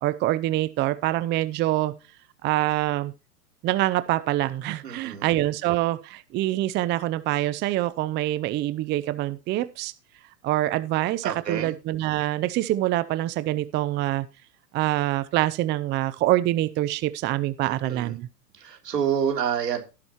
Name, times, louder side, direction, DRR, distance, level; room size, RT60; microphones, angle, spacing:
voice 1, 0.0-1.9 2.4-3.1 3.6-9.9 10.4-14.3 14.7-18.3, right 15 dB, 25° right, 0.5 m, -25 dB
voice 2, 4.8-5.3 11.2-11.7 17.6-18.1 18.6-19.8, right 8 dB, 90° right, 3.4 m, -28 dB
17.0 x 7.7 x 3.0 m
hypercardioid pair, 110°, 47 cm